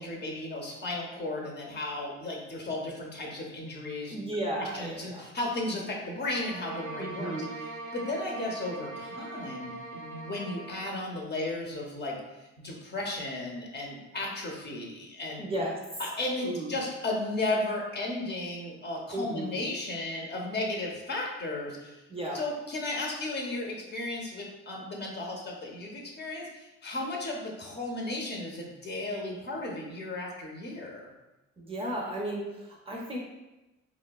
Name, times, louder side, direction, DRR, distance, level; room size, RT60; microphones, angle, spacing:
voice 1, 0.0-4.1 4.6-7.3 7.9-12.2 12.6-15.4 16.0-22.0 22.3-31.1, left 2 dB, 35° left, -1 dB, 0.7 m, -34 dB
voice 2, 4.1-5.3 7.0-7.5 15.4-15.8 16.4-16.7 19.1-19.5 22.1-22.4 31.6-33.2, right 1 dB, 20° right, -3 dB, 0.5 m, -34 dB
sound 1, 6.2-11.0, right 2 dB, 75° right, 0.5 m, -41 dB
2.9 x 2.1 x 2.3 m, 1.0 s
cardioid pair, 90°, 30 cm